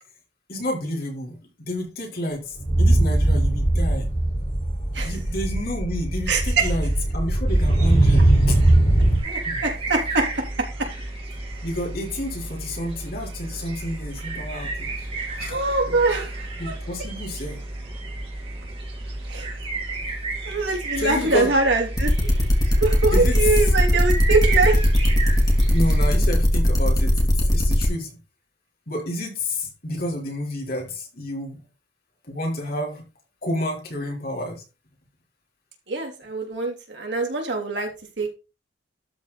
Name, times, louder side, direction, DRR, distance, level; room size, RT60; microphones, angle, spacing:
voice 1, 0.5-1.4 1.7-4.1 5.0-8.6 9.5-9.6 11.5-15.1 15.4-15.6 15.9-16.0 16.6-17.6 21.0-21.5 23.1-23.4 25.7-28.2 28.9-31.6 32.3-33.1 33.4-34.6, left 1 dB, 55° left, 4.2 m, -30 dB
sound 1, 2.6-9.2, right 1 dB, 40° left, 3.9 m, -20 dB
voice 2, 6.3-6.7 9.2-10.3 14.9-16.7 19.3-19.5 20.4-22.1 22.8-24.8 35.9-37.9 38.2-38.3, right 3 dB, 80° right, 3.4 m, -23 dB
sound 2, 7.5-26.1, right 2 dB, 30° right, 3.0 m, -33 dB
sound 3, 22.0-27.9, equal, 20° left, 3.0 m, -19 dB
12.5 x 4.9 x 4.2 m
head